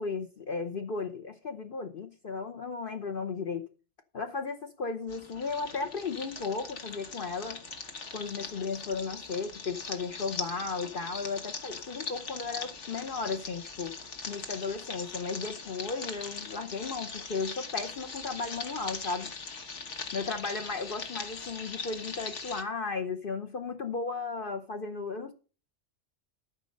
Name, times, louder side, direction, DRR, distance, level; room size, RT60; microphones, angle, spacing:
voice 1, 0.0-3.6 4.1-7.6 8.1-13.9 14.3-19.3 20.1-25.3, left 4 dB, 50° left, 1.0 m, -35 dB
sound 1, 5.1-22.6, left 4 dB, 80° left, 1.7 m, -41 dB
13.0 x 5.2 x 6.5 m
omnidirectional pair, 1.2 m